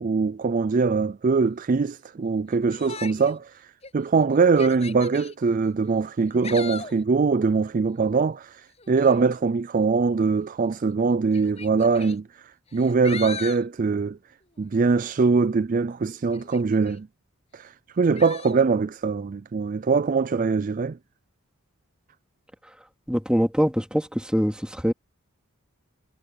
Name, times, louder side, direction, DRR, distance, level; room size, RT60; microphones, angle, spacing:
voice 1, 0.0-3.5 3.9-8.6 8.9-14.2 14.6-17.1 17.5-21.0, right 4 dB, 40° right, 0.4 m, -22 dB
Yell, 2.7-3.4 3.8-3.9 4.4-5.3 6.2-7.0 8.8-9.2 10.4-10.5 11.3-12.2 12.7-13.7 16.3-17.0 18.2-18.6, left 5 dB, 30° left, 7.6 m, -38 dB
voice 2, 23.1-24.9, equal, 5° right, 3.1 m, -23 dB
head